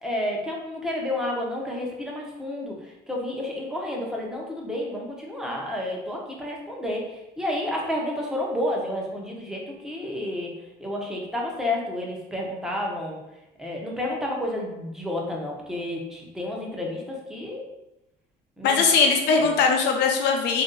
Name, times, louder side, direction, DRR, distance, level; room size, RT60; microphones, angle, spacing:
voice 1, 0.0-10.5 10.8-13.2 13.6-17.6 18.6-18.9, left 1 dB, 5° right, -2 dB, 0.8 m, -30 dB
voice 2, 18.6-20.6, left 5 dB, 80° left, 2 dB, 0.7 m, -20 dB
3.1 x 2.7 x 3.8 m, 0.94 s
cardioid pair, 110°, 17 cm